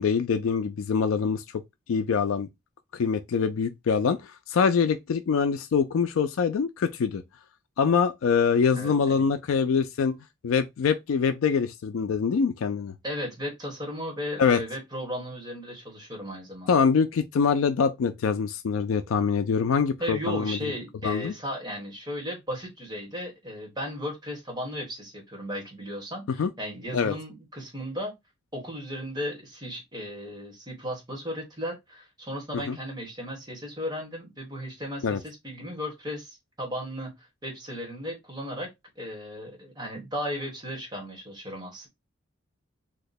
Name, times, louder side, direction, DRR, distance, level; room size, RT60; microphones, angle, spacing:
voice 1, 0.0-1.6 1.9-2.5 2.9-7.2 7.8-10.2 10.4-12.9 14.4-14.6 16.7-20.6 21.0-21.3 26.4-26.5 26.9-27.1 32.7-32.8 35.0-35.2, left 6 dB, 80° left, 0.4 m, -24 dB
voice 2, 8.7-9.2 13.0-16.8 20.0-28.1 28.5-38.7 38.9-41.9, equal, 20° right, 1.3 m, -35 dB
2.9 x 2.1 x 4.0 m
head